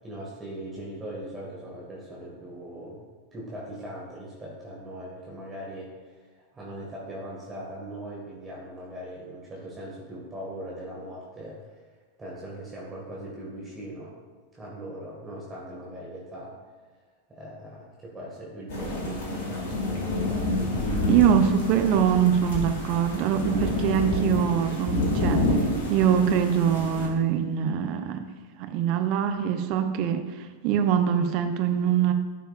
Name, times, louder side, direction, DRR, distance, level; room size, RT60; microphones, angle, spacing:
voice 1, 0.0-3.0 3.3-11.9 12.2-14.2 14.5-16.5 17.3-19.6 20.6-21.3, right 1 dB, 15° right, -5 dB, 1.7 m, -39 dB
sound 1, 18.7-27.1, left 2 dB, 55° left, 1.9 m, -28 dB
voice 2, 21.1-25.5 25.9-28.3 28.6-30.3 30.6-32.1, right 8 dB, 40° right, 7 dB, 0.7 m, -23 dB
13.0 x 5.7 x 2.4 m, 1.3 s
figure-of-eight pair, 90°, 0 cm